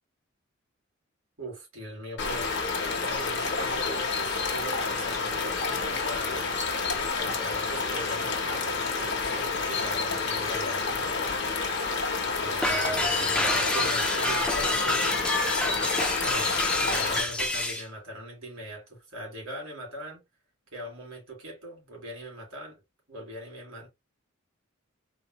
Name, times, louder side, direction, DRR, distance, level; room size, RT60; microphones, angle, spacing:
voice 1, 1.4-2.5 3.0-6.5 7.1-11.5 12.2-15.4 16.2-16.5 16.8-20.2 20.7-22.8 23.1-23.9, right 1 dB, 85° right, 2.2 m, -40 dB
sound 1, 2.2-17.2, left 4 dB, 55° left, 0.8 m, -29 dB
sound 2, 12.6-17.8, left 1 dB, 5° left, 0.4 m, -28 dB
3.9 x 2.1 x 2.9 m
head